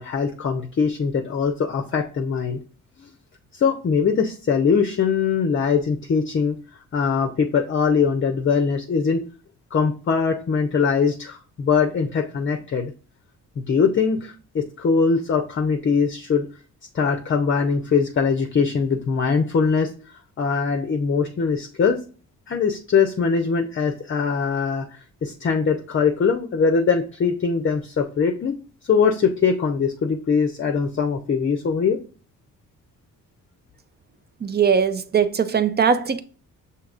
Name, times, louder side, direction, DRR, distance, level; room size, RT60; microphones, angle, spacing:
voice 1, 0.0-2.6 3.0-3.1 3.5-6.6 6.9-9.2 9.7-12.9 13.6-16.5 16.9-19.9 20.4-22.0 22.5-24.9 25.2-28.5 28.8-32.0, left 5 dB, 35° left, 0.6 m, -22 dB
voice 2, 34.4-36.2, right 6 dB, 30° right, 0.4 m, -20 dB
5.8 x 2.9 x 2.4 m
supercardioid pair, 65°, 33 cm